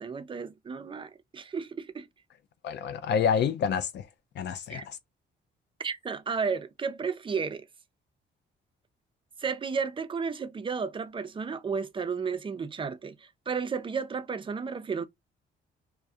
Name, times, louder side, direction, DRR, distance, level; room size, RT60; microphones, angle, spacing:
voice 1, 0.0-2.1 4.7-4.9 5.8-7.7 9.4-15.0, right 5 dB, 25° right, 0.4 m, -33 dB
voice 2, 2.6-4.1 4.4-5.0, left 7 dB, 60° left, 0.4 m, -28 dB
2.3 x 2.1 x 2.6 m
cardioid pair, 90°, 20 cm